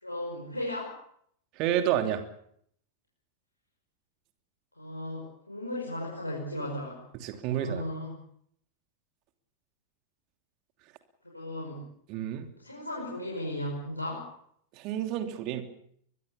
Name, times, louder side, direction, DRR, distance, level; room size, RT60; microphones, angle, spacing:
voice 1, 0.0-0.9 4.8-7.0 7.5-8.2 11.3-11.9 12.6-14.3, left 1 dB, 85° left, -3 dB, 6.0 m, -36 dB
voice 2, 1.6-2.2 7.2-7.8 12.1-12.5 14.7-15.6, right 11 dB, 40° right, 6 dB, 3.1 m, -29 dB
24.0 x 21.5 x 7.0 m, 0.68 s
figure-of-eight pair, 90°, 0 cm